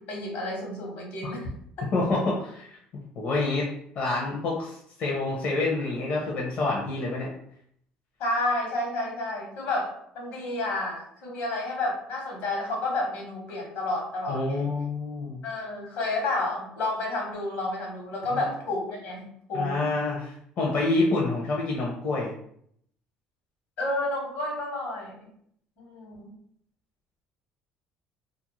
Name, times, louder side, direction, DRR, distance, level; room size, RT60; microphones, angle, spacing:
voice 1, 0.1-1.5 8.2-14.7 15.4-19.8 23.8-25.2 25.8-26.3, left 2 dB, 75° left, -1 dB, 1.1 m, -30 dB
voice 2, 1.9-2.8 3.2-3.7 3.9-7.3 14.3-15.4 18.3-18.4 19.5-22.3, left 2 dB, 55° left, -4 dB, 0.7 m, -27 dB
2.5 x 2.1 x 3.0 m, 0.68 s
supercardioid pair, 80°, 3 cm